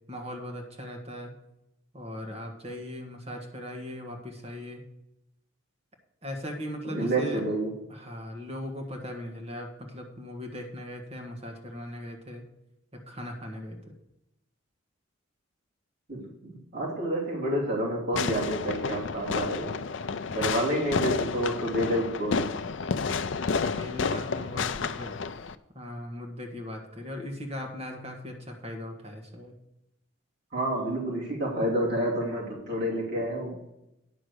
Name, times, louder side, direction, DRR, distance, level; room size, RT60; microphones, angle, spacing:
voice 1, 0.1-1.3 1.9-4.8 6.2-7.4 7.9-12.4 12.9-13.8 23.7-25.2 25.7-29.5, left 1 dB, 30° right, 2 dB, 1.5 m, -39 dB
voice 2, 6.8-7.7 16.1-19.8 20.3-22.5 30.5-33.6, right 1 dB, 55° right, -4 dB, 3.0 m, -29 dB
Fireworks, 18.1-25.6, left 5 dB, 65° left, 0.5 m, -30 dB
9.8 x 6.2 x 6.5 m, 0.86 s
head